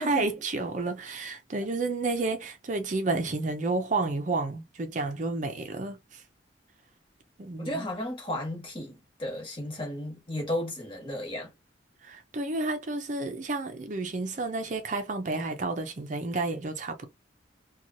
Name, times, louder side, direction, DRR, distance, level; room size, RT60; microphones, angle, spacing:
voice 1, 0.0-6.2 7.4-7.9 12.0-17.1, right 3 dB, 40° right, 0.5 m, -31 dB
voice 2, 7.6-11.5, left 1 dB, 25° left, 1.2 m, -34 dB
2.8 x 2.3 x 2.6 m
head